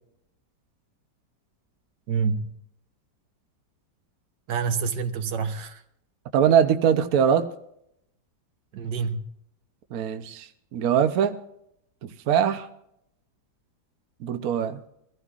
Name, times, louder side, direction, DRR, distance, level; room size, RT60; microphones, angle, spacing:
voice 1, 2.1-2.5 4.5-5.8 8.7-9.3, right 5 dB, 80° right, 1.6 m, -27 dB
voice 2, 6.3-7.5 9.9-11.4 12.0-12.7 14.2-14.8, right 8 dB, 60° right, 1.2 m, -22 dB
22.5 x 15.5 x 2.4 m
omnidirectional pair, 1.8 m